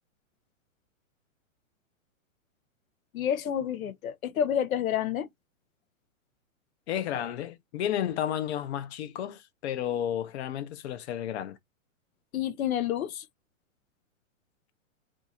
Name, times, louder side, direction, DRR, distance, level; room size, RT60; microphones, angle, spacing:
voice 1, 3.1-5.3 12.3-13.3, left 9 dB, 90° left, 0.7 m, -29 dB
voice 2, 6.9-11.6, left 10 dB, 50° left, 0.7 m, -32 dB
2.7 x 2.5 x 4.1 m
hypercardioid pair, 155°, 41 cm